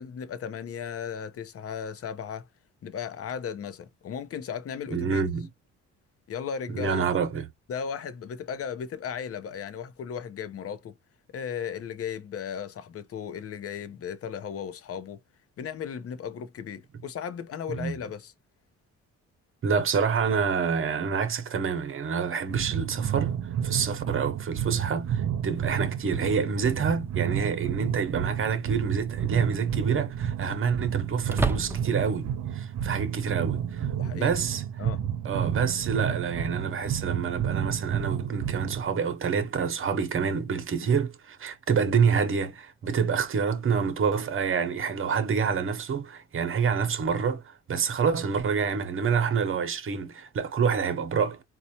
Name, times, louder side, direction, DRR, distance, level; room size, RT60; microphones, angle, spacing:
voice 1, 0.0-2.5 2.8-5.2 6.3-7.1 7.7-11.0 11.3-15.2 15.6-18.3 33.9-34.3 34.8-35.0, left 7 dB, 50° left, 0.7 m, -36 dB
voice 2, 4.9-5.5 6.7-7.5 17.8-17.9 19.6-23.4 23.6-33.9 34.1-34.6 35.2-47.4 47.7-51.4, right 6 dB, 45° right, 0.9 m, -27 dB
sound 1, 22.5-38.9, right 9 dB, 65° right, 0.7 m, -30 dB
sound 2, 26.7-26.8 28.6-29.0 29.4-29.5 31.2-32.1, right 2 dB, 10° right, 0.5 m, -30 dB
4.2 x 2.3 x 2.8 m
cardioid pair, 90°, 30 cm